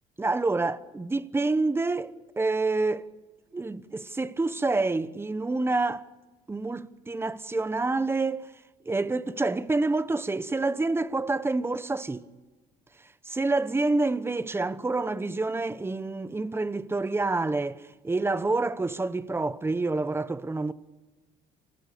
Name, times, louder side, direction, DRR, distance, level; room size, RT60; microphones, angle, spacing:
voice 1, 0.2-3.1 3.5-6.1 6.5-8.5 8.8-12.3 13.0-20.7, right 3 dB, 15° right, 1.0 m, -28 dB
27.5 x 18.0 x 8.5 m
cardioid pair, 110°, 17 cm